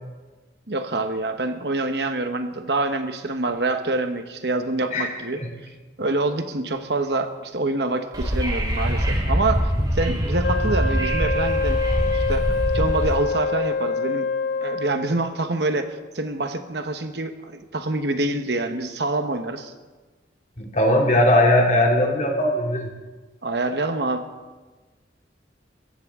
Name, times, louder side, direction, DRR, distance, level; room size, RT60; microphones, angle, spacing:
voice 1, 0.7-5.4 6.0-11.8 12.1-14.3 14.6-19.7 23.4-24.2, right 2 dB, 60° right, 7 dB, 1.1 m, -26 dB
Wind / Subway metro underground, 8.1-13.1, equal, 20° right, 2.3 m, -23 dB
Wind instrument woodwind instrument, 10.4-15.2, left 4 dB, 90° left, 3.0 m, -25 dB
voice 2, 20.6-22.9, left 1 dB, 40° left, 0 dB, 2.4 m, -19 dB
22.0 x 15.0 x 3.7 m, 1.3 s
head